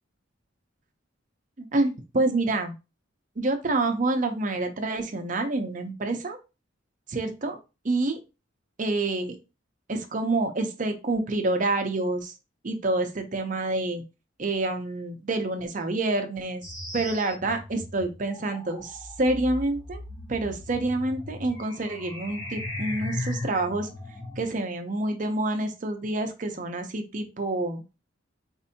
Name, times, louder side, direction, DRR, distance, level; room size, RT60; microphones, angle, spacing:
voice 1, 1.6-2.7 3.4-6.4 7.1-7.6 7.8-8.2 8.8-9.4 9.9-12.3 12.6-14.0 14.4-16.6 16.9-20.0 20.3-23.9 24.4-27.8, right 2 dB, 40° right, 6 dB, 0.6 m, -27 dB
sound 1, 16.6-24.5, left 1 dB, 20° left, 0.7 m, -37 dB
4.2 x 2.7 x 2.7 m, 0.28 s
head